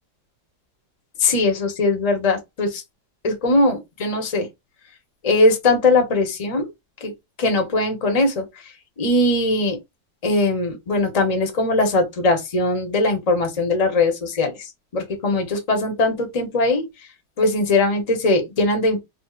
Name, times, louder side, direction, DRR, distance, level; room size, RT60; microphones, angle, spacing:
voice 1, 1.2-2.8 3.2-4.5 5.2-6.7 7.0-7.1 7.4-8.4 9.0-9.8 10.2-16.8 17.4-19.0, left 2 dB, 30° left, 0.7 m, -20 dB
4.4 x 2.0 x 2.4 m
omnidirectional pair, 2.1 m